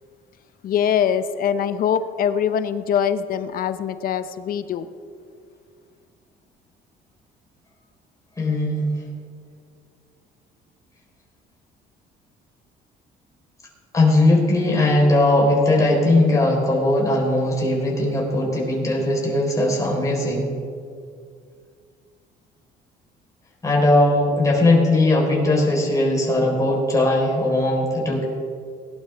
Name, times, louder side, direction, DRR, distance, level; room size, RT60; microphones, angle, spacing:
voice 1, 0.6-4.9, left 8 dB, 60° left, 12 dB, 0.7 m, -23 dB
voice 2, 8.4-8.9 13.9-20.5 23.6-28.2, left 1 dB, 20° left, -3 dB, 4.0 m, -19 dB
19.5 x 11.5 x 3.4 m, 2.2 s
cardioid pair, 110°, 17 cm